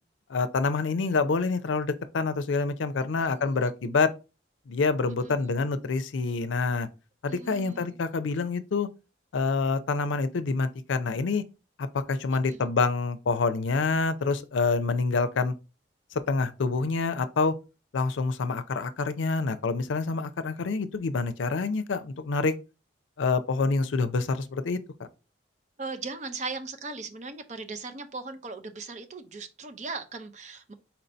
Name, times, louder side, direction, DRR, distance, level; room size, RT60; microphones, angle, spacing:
voice 1, 0.3-4.1 4.7-6.9 7.2-8.9 9.3-11.4 11.8-15.5 16.3-17.5 17.9-22.5 23.2-25.1, left 4 dB, 90° left, 0.5 m, -27 dB
voice 2, 3.2-4.0 5.2-5.4 7.3-8.0 12.5-12.6 25.8-30.7, right 3 dB, 40° right, 0.6 m, -38 dB
4.3 x 2.7 x 4.3 m
head